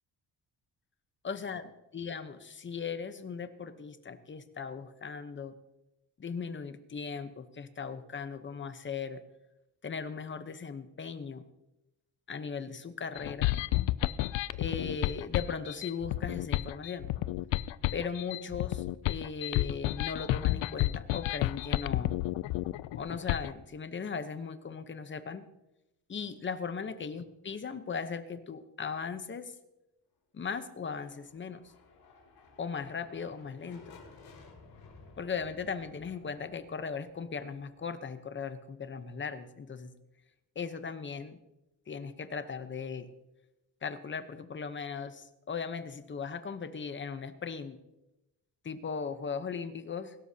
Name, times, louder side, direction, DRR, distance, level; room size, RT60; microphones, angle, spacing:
voice 1, 1.2-5.5 6.2-9.2 9.8-11.4 12.3-13.5 14.6-17.1 17.9-22.2 22.9-25.5 26.1-29.5 30.3-31.6 32.6-33.8 35.2-39.9 40.6-41.4 41.9-43.1 43.8-47.8 48.6-50.1, left 5 dB, 25° left, 10 dB, 0.8 m, -38 dB
sound 1, 13.2-23.5, left 16 dB, 85° left, 0.6 m, -31 dB
sound 2, 30.7-38.5, left 4 dB, 65° left, 6.0 m, -56 dB
23.0 x 12.5 x 2.8 m, 0.95 s
cardioid pair, 150°, 43 cm